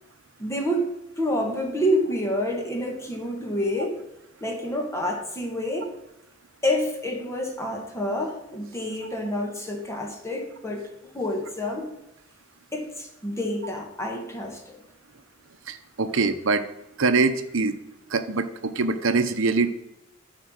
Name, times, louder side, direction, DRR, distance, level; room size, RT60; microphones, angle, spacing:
voice 1, 0.4-0.9 1.2-4.0 4.4-5.9 6.6-10.9 11.1-11.9 12.7-14.8, left 1 dB, 15° left, 2 dB, 1.3 m, -28 dB
voice 2, 15.7-16.6 17.0-17.7 18.1-19.7, right 4 dB, 65° right, 10 dB, 0.8 m, -23 dB
11.5 x 4.5 x 6.4 m, 0.89 s
head